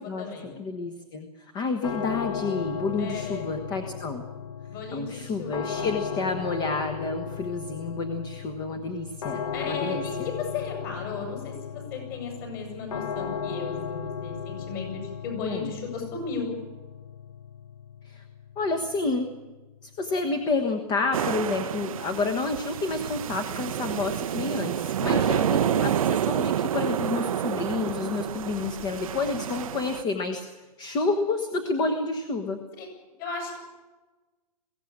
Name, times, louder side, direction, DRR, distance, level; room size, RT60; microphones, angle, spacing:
voice 1, 0.0-0.5 3.0-3.5 4.7-5.9 9.5-16.5 25.0-25.5 32.8-32.9 33.2-33.6, left 5 dB, 35° left, 3 dB, 7.8 m, -35 dB
voice 2, 0.6-4.2 4.9-10.3 15.4-15.7 18.0-18.2 18.6-19.3 19.8-32.6, left 3 dB, 20° left, 7 dB, 1.3 m, -29 dB
sound 1, 1.8-20.7, left 7 dB, 60° left, 1.5 m, -36 dB
sound 2, 21.1-30.0, right 10 dB, 60° right, 0.7 m, -28 dB
22.0 x 16.5 x 8.7 m, 1.2 s
hypercardioid pair, 160°, 20 cm